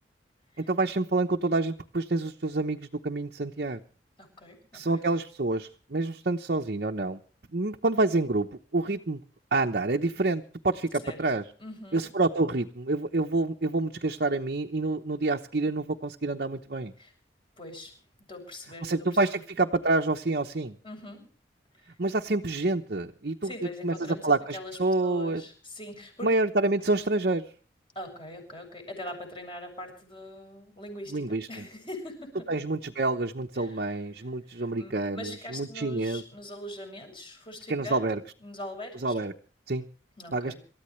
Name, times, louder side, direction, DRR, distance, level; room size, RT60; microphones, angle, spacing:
voice 1, 0.6-3.8 4.7-7.2 7.5-8.5 8.7-9.2 9.5-11.4 11.9-16.9 18.8-20.8 22.0-23.5 23.8-25.4 26.2-27.5 31.1-31.7 32.5-36.2 37.7-38.2 39.0-39.3 39.7-39.9 40.3-40.5, right 2 dB, 55° right, 2 dB, 0.9 m, -27 dB
voice 2, 4.2-5.0 11.0-11.2 11.6-12.0 17.0-17.1 17.6-17.9 18.3-19.1 19.3-19.4 20.8-21.3 21.8-21.9 23.4-26.3 27.9-32.5 33.6-33.8 34.5-39.1 40.2-40.6, left 1 dB, 30° left, 4 dB, 7.5 m, -42 dB
27.0 x 14.0 x 3.2 m, 0.41 s
head